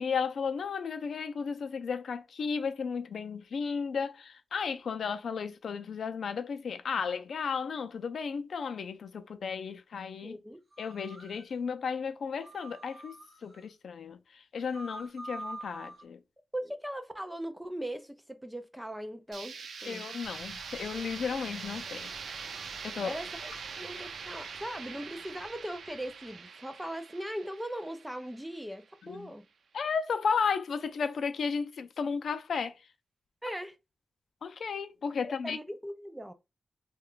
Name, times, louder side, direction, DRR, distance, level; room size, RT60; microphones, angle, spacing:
voice 1, 0.0-10.4 10.8-13.2 13.4-16.2 19.8-22.1 22.8-23.2 29.1-29.3 29.7-32.8 33.5-33.6 34.4-35.6, left 6 dB, 75° left, 0.4 m, -34 dB
voice 2, 10.2-10.6 15.0-15.1 16.5-20.1 23.0-29.5 33.4-33.7 35.2-36.3, right 1 dB, 5° right, 0.3 m, -39 dB
sound 1, 10.7-11.4 12.4-13.6 14.6-16.0, right 1 dB, 30° right, 0.7 m, -45 dB
sound 2, 19.3-29.1, right 5 dB, 85° right, 0.3 m, -43 dB
sound 3, 20.2-26.4, right 2 dB, 10° left, 1.6 m, -58 dB
3.2 x 2.2 x 3.6 m
wide cardioid pair, 175°, 0 cm